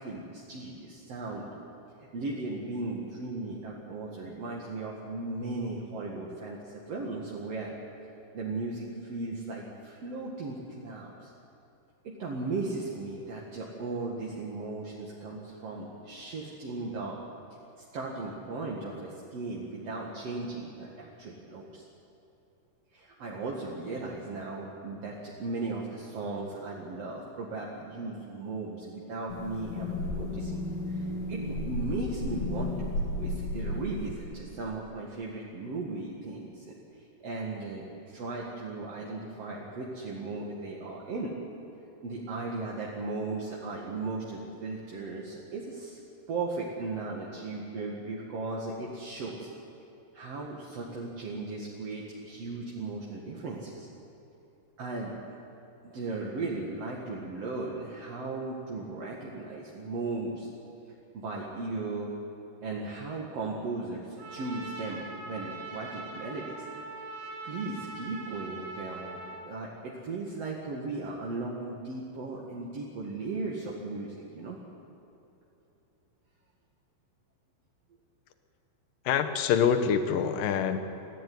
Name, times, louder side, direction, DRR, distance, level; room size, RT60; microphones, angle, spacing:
voice 1, 0.0-1.5 2.0-7.7 8.3-11.3 12.0-17.2 17.9-21.9 22.9-30.6 30.9-36.7 37.2-41.3 42.0-46.0 46.3-49.5 50.1-53.9 54.8-55.1 55.8-60.5 61.1-62.1 62.6-66.6 67.4-74.6, right 3 dB, 45° right, -3 dB, 2.2 m, -37 dB
sound 1, 29.3-34.3, left 1 dB, 50° left, 4.4 m, -33 dB
Trumpet, 64.2-69.5, right 3 dB, 90° right, 5.1 m, -42 dB
voice 2, 79.1-80.8, left 7 dB, 70° left, 8 dB, 2.3 m, -25 dB
25.0 x 15.0 x 9.6 m, 2.9 s
omnidirectional pair, 5.2 m